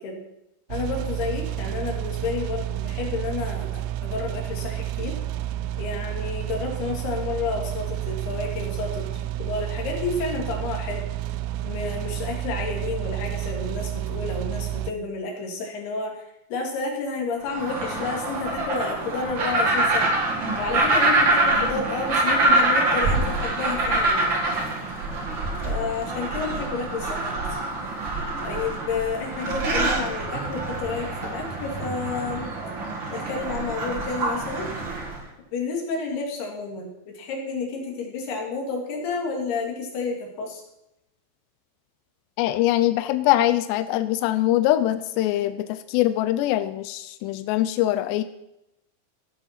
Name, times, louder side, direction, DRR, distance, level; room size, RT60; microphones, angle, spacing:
voice 1, 0.7-5.2 5.8-11.0 11.6-16.3 16.5-20.1 20.6-24.3 25.6-27.4 28.4-32.5 33.1-34.7 35.5-40.6, left 4 dB, 60° left, 1 dB, 4.0 m, -30 dB
sound 1, 0.7-14.9, right 13 dB, 90° right, 3.1 m, -30 dB
sound 2, 17.5-35.2, right 2 dB, 50° right, 1.4 m, -25 dB
voice 2, 42.4-48.2, left 14 dB, 85° left, 10 dB, 2.5 m, -23 dB
15.5 x 7.3 x 5.9 m, 0.87 s
omnidirectional pair, 5.6 m